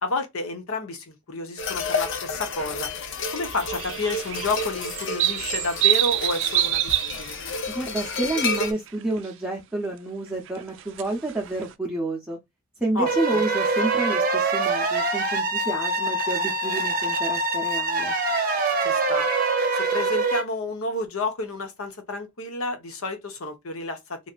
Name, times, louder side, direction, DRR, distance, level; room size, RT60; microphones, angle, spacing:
voice 1, 0.0-2.9 3.3-7.4 12.9-13.4 18.8-19.3 19.7-24.2, left 2 dB, 75° left, 0.9 m, -30 dB
sound 1, 1.6-8.7, left 4 dB, 55° left, 0.6 m, -31 dB
sound 2, 3.4-8.6 8.9-9.3 10.5-11.7, right 14 dB, 55° right, 0.4 m, -26 dB
voice 2, 7.7-12.4 12.8-18.1, right 2 dB, 5° right, 0.7 m, -29 dB
sound 3, 13.1-20.4, right 3 dB, 40° right, 0.8 m, -24 dB
3.2 x 2.7 x 2.4 m
head